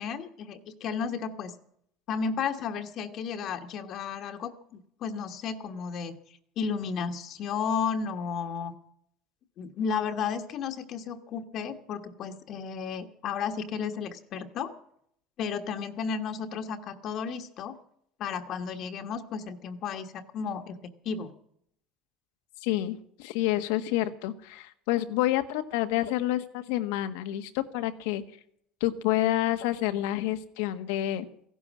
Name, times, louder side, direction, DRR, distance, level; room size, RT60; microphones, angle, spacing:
voice 1, 0.0-1.5 2.1-6.2 6.6-8.7 9.6-14.7 15.4-17.8 18.2-21.3, left 6 dB, 45° left, 6 dB, 1.3 m, -33 dB
voice 2, 22.6-28.2 28.8-31.2, left 14 dB, 85° left, 9 dB, 1.4 m, -28 dB
16.0 x 11.5 x 7.3 m, 0.69 s
cardioid pair, 140°, 0 cm